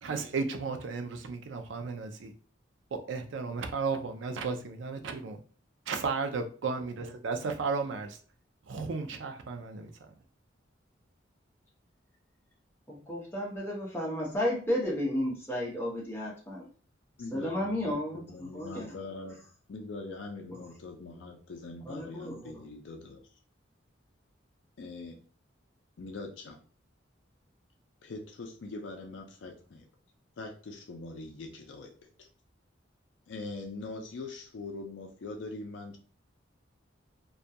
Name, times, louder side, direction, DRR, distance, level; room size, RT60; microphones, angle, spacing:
voice 1, 0.0-2.3 2.9-5.4 5.9-8.2 8.7-10.2, right 4 dB, 75° right, 6 dB, 0.4 m, -34 dB
voice 2, 12.9-16.7 17.3-18.9 20.5-20.7 21.9-22.6, left 1 dB, 10° left, -4 dB, 0.7 m, -33 dB
voice 3, 17.2-19.4 19.7-23.2 24.8-25.2 26.0-26.6 28.0-29.9 30.4-31.9 32.2-32.3 33.3-36.0, left 3 dB, 70° left, 3 dB, 0.4 m, -42 dB
2.3 x 2.2 x 2.6 m, 0.41 s
head